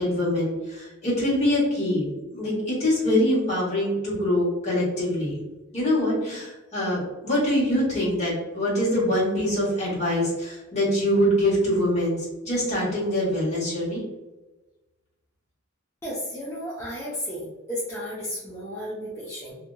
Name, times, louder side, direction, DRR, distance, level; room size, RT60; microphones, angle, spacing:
voice 1, 0.0-5.4 5.7-14.0, left 1 dB, 35° left, -7 dB, 1.4 m, -24 dB
voice 2, 16.0-17.4 17.7-19.6, equal, 10° left, -9 dB, 0.6 m, -33 dB
2.8 x 2.7 x 2.2 m, 1.1 s
head